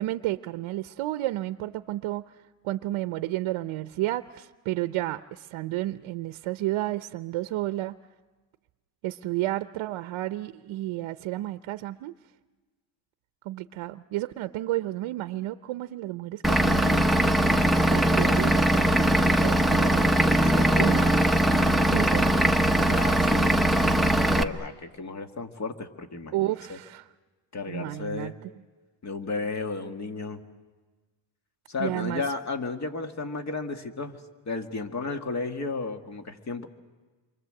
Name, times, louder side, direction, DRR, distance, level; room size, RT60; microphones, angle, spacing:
voice 1, 0.0-2.3 2.6-8.0 9.0-12.1 13.4-17.2 17.9-20.1 20.8-21.1 21.9-22.5 26.3-27.1 27.7-28.5 31.8-32.2, right 16 dB, 90° right, 11 dB, 0.8 m, -31 dB
Vehicle / Engine, 16.4-24.4, right 1 dB, ahead, 0.9 m, -21 dB
voice 2, 20.4-21.5 22.7-23.7 24.4-26.8 27.5-28.3 29.0-30.4 31.7-34.2 34.5-36.7, left 3 dB, 35° left, 6 dB, 2.0 m, -34 dB
29.0 x 24.5 x 7.7 m, 1.3 s
cardioid pair, 140°, 46 cm